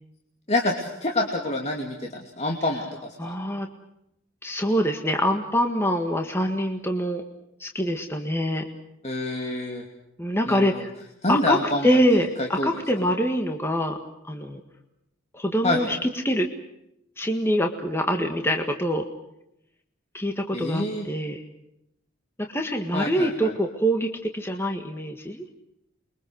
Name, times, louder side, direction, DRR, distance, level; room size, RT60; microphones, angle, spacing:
voice 1, 0.5-3.3 9.0-9.8 10.5-10.9 11.2-12.0 12.4-12.7 15.6-15.8 20.5-21.1 22.9-23.5, left 2 dB, 30° left, 1 dB, 2.6 m, -27 dB
voice 2, 3.2-3.7 4.4-7.2 7.6-8.7 10.2-10.9 11.3-11.6 11.8-14.0 14.2-14.6 15.3-16.5 17.2-19.0 20.1-21.5 22.5-24.1 24.3-25.5, equal, 10° left, 4 dB, 1.7 m, -24 dB
29.0 x 23.0 x 6.4 m, 0.82 s
head